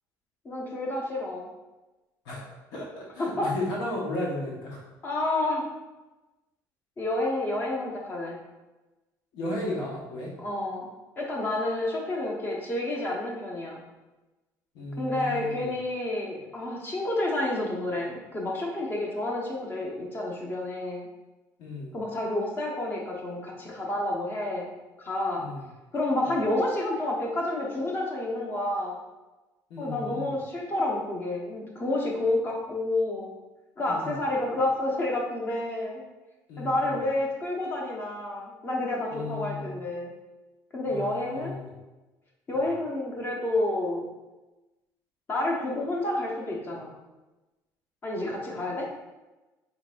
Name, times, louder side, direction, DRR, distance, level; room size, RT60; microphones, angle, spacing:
voice 1, 0.4-1.5 3.2-3.5 5.0-5.7 7.0-8.4 10.4-10.9 11.2-13.8 15.0-21.1 21.9-24.7 25.0-25.4 25.9-29.0 29.8-33.3 33.8-36.0 36.6-40.1 40.7-41.6 42.5-44.1 45.3-46.9 48.0-48.9, left 1 dB, 30° left, -2 dB, 0.9 m, -29 dB
voice 2, 2.2-4.8 9.3-10.3 14.7-15.7 21.6-21.9 25.4-25.6 29.7-30.3 33.9-34.1 36.5-36.9 39.1-39.8 40.9-41.7 42.5-42.6, left 2 dB, 70° left, -4 dB, 1.3 m, -35 dB
4.5 x 3.8 x 2.5 m, 1.1 s
cardioid pair, 140°, 7 cm